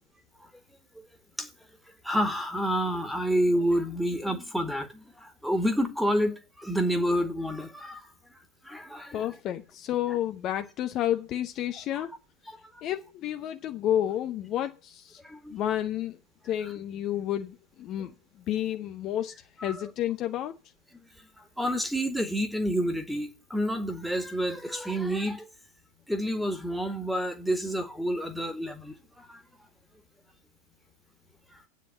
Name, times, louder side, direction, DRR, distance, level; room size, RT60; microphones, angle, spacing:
voice 1, 2.0-8.1 8.6-9.2 11.9-12.1 12.5-12.6 15.2-15.5 19.6-19.8 21.6-25.5 26.1-29.4, equal, ahead, 1.9 m, -29 dB
voice 2, 9.1-12.1 12.8-15.2 15.5-16.2 16.4-18.1 18.5-19.3 19.6-20.5, left 11 dB, 35° left, 0.8 m, -30 dB
9.0 x 8.2 x 7.1 m
figure-of-eight pair, 90°, 0 cm